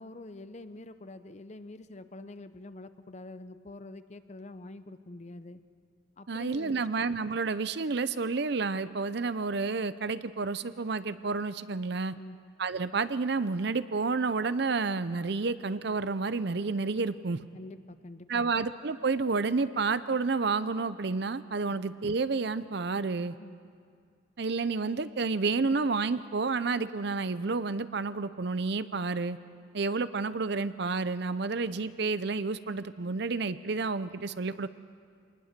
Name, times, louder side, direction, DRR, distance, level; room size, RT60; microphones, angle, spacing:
voice 1, 0.0-5.6 6.2-6.8 12.1-12.4 17.5-18.5 23.4-23.6, left 2 dB, 35° left, 12 dB, 0.6 m, -46 dB
voice 2, 6.3-12.2 12.6-17.4 18.3-23.4 24.4-29.4 29.7-34.7, right 4 dB, 60° right, 14 dB, 0.6 m, -30 dB
25.0 x 19.5 x 6.7 m, 2.2 s
head